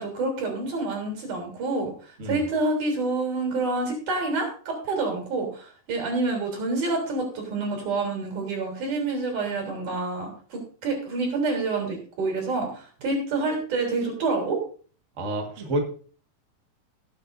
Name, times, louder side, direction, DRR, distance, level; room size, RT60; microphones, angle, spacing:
voice 1, 0.0-1.9 2.2-14.6, right 3 dB, 60° right, 1 dB, 5.0 m, -28 dB
voice 2, 15.2-15.8, right 1 dB, 40° right, 2 dB, 1.0 m, -28 dB
18.5 x 8.3 x 2.7 m, 0.41 s
omnidirectional pair, 4.2 m